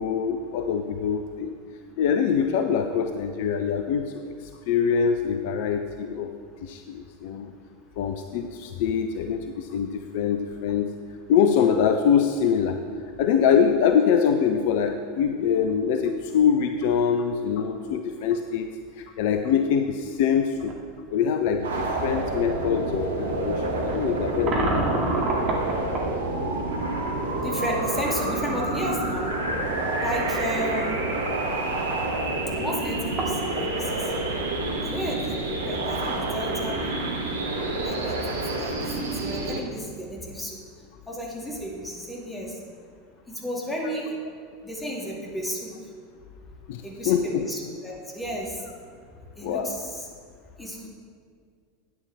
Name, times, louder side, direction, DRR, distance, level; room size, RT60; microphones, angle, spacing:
voice 1, 0.0-1.5 2.0-4.3 4.7-6.3 6.6-7.5 8.0-10.9 11.3-12.8 13.2-18.7 19.0-20.7 21.1-25.1 46.7-47.5 49.4-49.8, left 7 dB, 55° left, 6 dB, 0.5 m, -24 dB
sound 1, 20.6-20.8 21.6-21.7 23.8-26.1 28.6-28.7 29.0-29.1 32.5-32.6 32.8-33.7, right 2 dB, 35° right, 2.0 m, -28 dB
sound 2, 21.6-39.6, right 2 dB, 70° right, 1.2 m, -28 dB
voice 2, 27.4-29.3 30.0-31.0 32.5-34.3 34.8-37.2 37.9-38.2 38.6-38.8 39.2-40.6 41.1-42.5 43.3-44.1 44.6-45.7 46.8-48.6 49.4-50.0 50.6-50.9, equal, 10° left, -3 dB, 2.4 m, -33 dB
13.0 x 8.9 x 3.5 m, 2.1 s
figure-of-eight pair, 85°, 0 cm